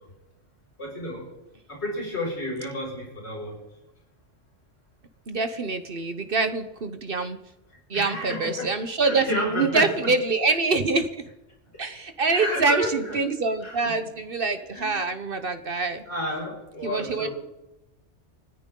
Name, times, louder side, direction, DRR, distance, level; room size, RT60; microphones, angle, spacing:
voice 1, 0.8-1.3 1.7-3.6 7.9-8.7 9.0-10.1 12.2-13.2 13.6-14.0 14.7-15.0 16.1-17.3, equal, 65° left, -4 dB, 6.3 m, -31 dB
voice 2, 5.3-7.4 7.9-11.2 11.8-16.0 16.8-17.3, right 3 dB, 50° right, 9 dB, 1.1 m, -25 dB
28.5 x 10.5 x 3.8 m, 0.95 s
omnidirectional pair, 1.3 m